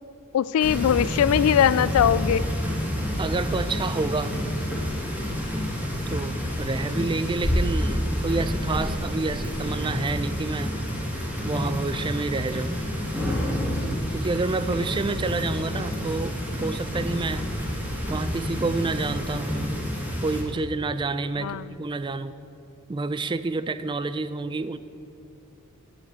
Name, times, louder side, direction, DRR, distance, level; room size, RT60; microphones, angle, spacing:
voice 1, 0.3-2.4 15.7-15.9 21.4-21.7, left 9 dB, 90° left, 18 dB, 0.3 m, -21 dB
sound 1, 0.6-20.4, equal, 5° right, 2.2 m, -28 dB
voice 2, 3.2-4.4 6.1-10.7 11.4-12.8 14.1-17.5 18.1-19.8 20.2-22.4 22.9-24.8, right 3 dB, 25° right, 14 dB, 0.3 m, -29 dB
9.6 x 7.3 x 7.6 m, 2.6 s
head